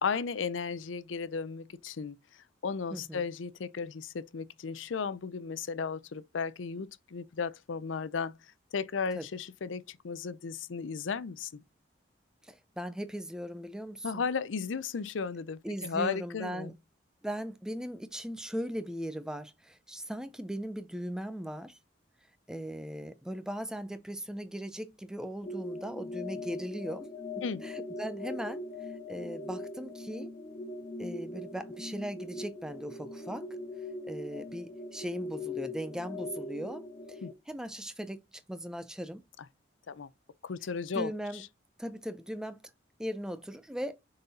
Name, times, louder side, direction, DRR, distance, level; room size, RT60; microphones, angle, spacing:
voice 1, 0.0-8.4 8.7-11.5 14.0-16.7 27.4-27.6 37.2-37.3 39.9-40.1 40.4-41.5, left 5 dB, 80° left, 0.5 m, -35 dB
voice 2, 2.9-3.2 9.1-9.3 12.4-14.2 15.6-16.7 17.2-21.8 22.5-27.1 27.4-28.6 29.1-30.3 31.0-33.5 34.0-39.2 40.9-41.4 41.8-42.6 43.0-44.0, equal, 5° right, 0.5 m, -38 dB
sound 1, 25.4-37.3, left 2 dB, 35° left, 1.6 m, -41 dB
6.6 x 4.0 x 4.1 m
head